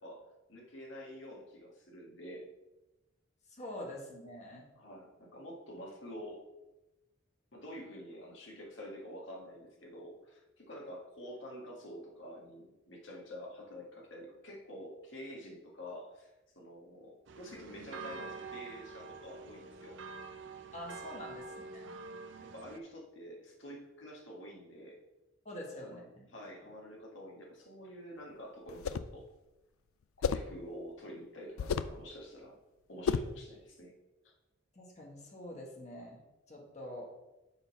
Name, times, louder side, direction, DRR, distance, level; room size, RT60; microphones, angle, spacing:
voice 1, 0.0-2.5 4.8-6.5 7.5-20.0 22.4-25.0 25.8-26.0 26.3-29.2 30.2-32.6 32.9-34.0 34.2-34.3, equal, 65° left, -1 dB, 1.7 m, -48 dB
voice 2, 3.5-4.7 20.7-21.9 25.4-26.3 34.7-37.1, left 1 dB, 35° left, -1 dB, 1.3 m, -46 dB
sound 1, 17.3-22.8, right 4 dB, 60° right, 0.5 m, -46 dB
sound 2, 28.7-29.2 30.2-30.6 31.6-32.0 33.1-33.4, left 6 dB, 90° left, 0.3 m, -32 dB
6.9 x 3.9 x 5.6 m, 1.0 s
head